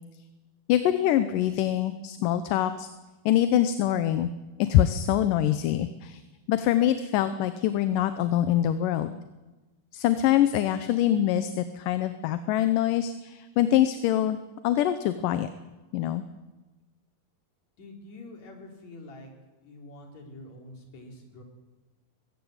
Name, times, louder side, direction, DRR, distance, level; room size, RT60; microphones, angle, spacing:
voice 1, 0.7-2.9 3.3-4.3 4.6-6.2 6.5-9.1 9.9-14.4 14.6-15.5 15.9-16.2, left 12 dB, 80° left, 11 dB, 2.4 m, -24 dB
voice 2, 17.8-19.3 19.6-21.4, left 2 dB, 55° left, 1 dB, 4.8 m, -46 dB
21.5 x 15.5 x 8.0 m, 1.1 s
omnidirectional pair, 3.9 m